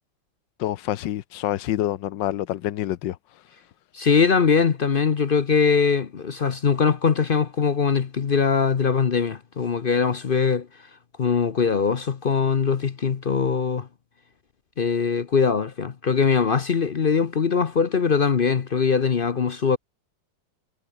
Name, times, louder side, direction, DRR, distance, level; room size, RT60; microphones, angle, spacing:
voice 1, 0.6-3.2, left 13 dB, 80° left, 1.4 m, -27 dB
voice 2, 3.9-10.7 11.2-13.9 14.8-19.8, left 6 dB, 45° left, 0.7 m, -21 dB
omnidirectional pair, 2.0 m